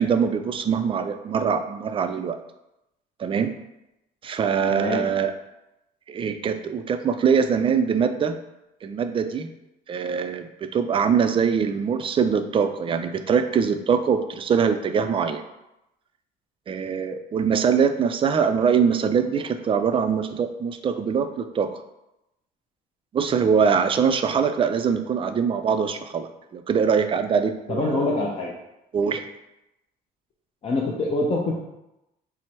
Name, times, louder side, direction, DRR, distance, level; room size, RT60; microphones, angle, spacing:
voice 1, 0.0-2.4 3.2-3.5 4.2-5.3 6.1-8.3 8.8-9.5 9.9-15.4 16.7-21.8 23.1-28.2 28.9-29.2, right 6 dB, 30° right, 7 dB, 0.4 m, -23 dB
voice 2, 4.7-5.0 27.7-28.5 30.6-31.6, left 2 dB, 35° left, -2 dB, 0.6 m, -25 dB
4.4 x 2.0 x 4.4 m, 0.91 s
cardioid pair, 110°, 17 cm